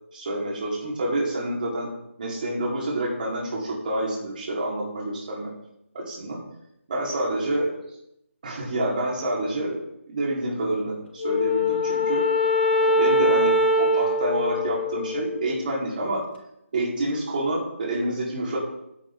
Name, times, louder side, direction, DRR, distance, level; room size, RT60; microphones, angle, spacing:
voice 1, 0.1-1.9 2.2-5.5 5.9-6.4 6.9-7.7 8.4-9.8 10.1-12.2 12.8-16.2 16.7-18.6, right 1 dB, 40° right, -4 dB, 4.4 m, -28 dB
Wind instrument woodwind instrument, 11.2-15.7, left 1 dB, 50° left, 3.8 m, -23 dB
15.0 x 10.5 x 3.9 m, 0.81 s
figure-of-eight pair, 160°, 7 cm